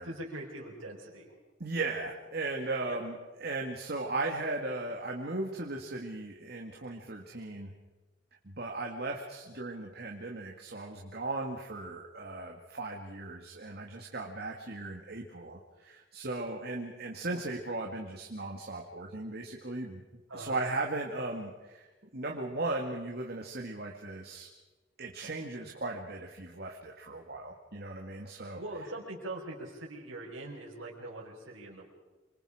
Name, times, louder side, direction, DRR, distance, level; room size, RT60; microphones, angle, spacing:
voice 1, 0.0-1.3 2.8-3.1 20.3-20.6 28.5-31.9, right 1 dB, 90° right, -4 dB, 4.7 m, -42 dB
voice 2, 1.6-7.7 8.4-21.8 22.1-24.5 25.0-28.6, right 2 dB, 50° right, 1 dB, 2.1 m, -37 dB
27.0 x 26.0 x 5.0 m, 1.2 s
head